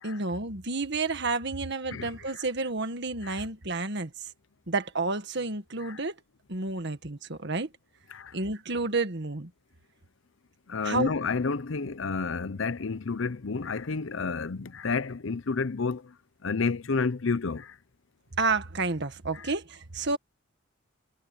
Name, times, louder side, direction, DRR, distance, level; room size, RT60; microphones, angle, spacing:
voice 1, 0.0-4.3 4.7-6.1 6.5-7.7 8.3-9.5 10.8-11.1 18.4-20.2, right 3 dB, 55° right, 1.8 m, -30 dB
voice 2, 1.9-2.4 3.2-3.4 5.8-6.0 8.1-8.3 10.7-16.1 16.4-17.8 19.3-19.5, left 4 dB, 65° left, 0.7 m, -30 dB
head